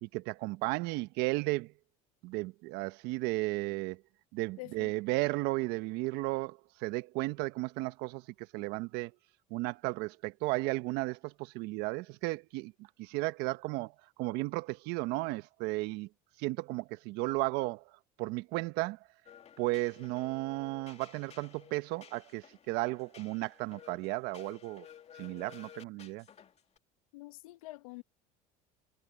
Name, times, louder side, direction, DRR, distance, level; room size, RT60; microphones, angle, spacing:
voice 1, 0.0-1.7 2.2-4.0 4.3-9.1 9.5-12.7 13.0-13.9 14.2-16.1 16.4-17.8 18.2-19.0 19.6-24.9 25.2-26.2, right 21 dB, 70° right, 1.2 m, -34 dB
voice 2, 4.6-4.9 27.1-28.0, left 22 dB, 85° left, 1.4 m, -46 dB
sound 1, 19.3-26.8, left 9 dB, 40° left, 2.7 m, -55 dB
supercardioid pair, 90°, 17 cm